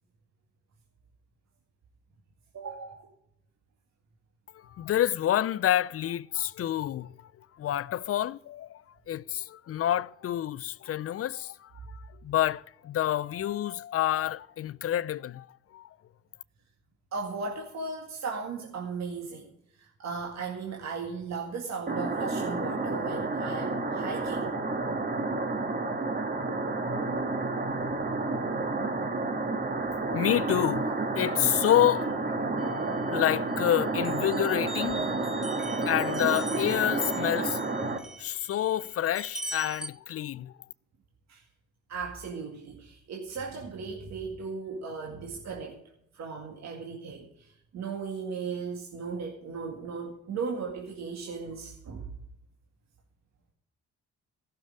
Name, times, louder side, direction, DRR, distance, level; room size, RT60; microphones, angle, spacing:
voice 1, 2.5-3.1 17.1-19.5 19.7-24.5 41.3-41.4 41.9-45.8 46.1-52.1, right 4 dB, 60° right, 2.1 m, -37 dB
voice 2, 4.5-7.1 7.6-8.8 9.1-15.5 15.7-15.9 30.0-35.1 35.9-37.6 38.2-40.5, left 12 dB, 50° left, 0.5 m, -28 dB
sound 1, 21.9-38.0, right 3 dB, 30° right, 1.7 m, -30 dB
sound 2, 32.6-33.6 34.0-39.9, right 1 dB, ahead, 1.1 m, -42 dB
14.5 x 6.8 x 8.7 m
cardioid pair, 90°, 30 cm